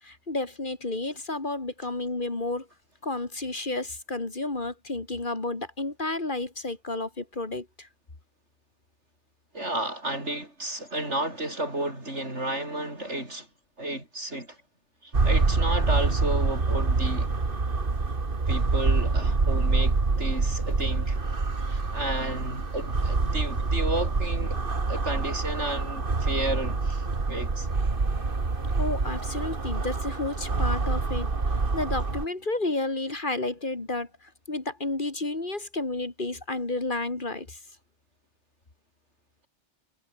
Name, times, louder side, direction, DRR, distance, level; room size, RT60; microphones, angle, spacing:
voice 1, 0.0-2.7 3.0-7.9 28.8-37.6, left 2 dB, 45° left, 2.8 m, -31 dB
voice 2, 9.5-13.5 13.8-14.6 15.0-17.3 18.5-21.2 21.6-24.6 24.9-27.7, right 1 dB, 80° right, 7.8 m, -32 dB
sound 1, 15.1-32.3, right 3 dB, 50° right, 2.3 m, -26 dB
omnidirectional pair, 1.2 m